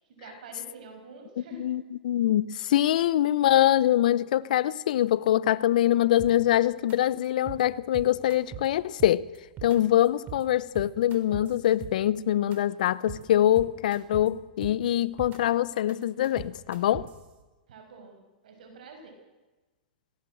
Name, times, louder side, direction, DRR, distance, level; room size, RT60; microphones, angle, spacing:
voice 1, 0.1-1.6 17.7-19.1, right 4 dB, 70° right, 5.9 m, -47 dB
voice 2, 1.5-9.3 9.6-17.1, left 12 dB, 65° left, 0.7 m, -24 dB
sound 1, 6.2-6.6 6.9-7.0 7.2-7.6 7.9-8.7 9.0-9.8 10.0-10.4 10.7-12.2 12.5-12.6 12.9-13.2 13.6-14.3 14.6-15.4 15.7-17.2, right 8 dB, 35° right, 3.6 m, -41 dB
19.0 x 17.5 x 7.9 m
hypercardioid pair, 115°, 5 cm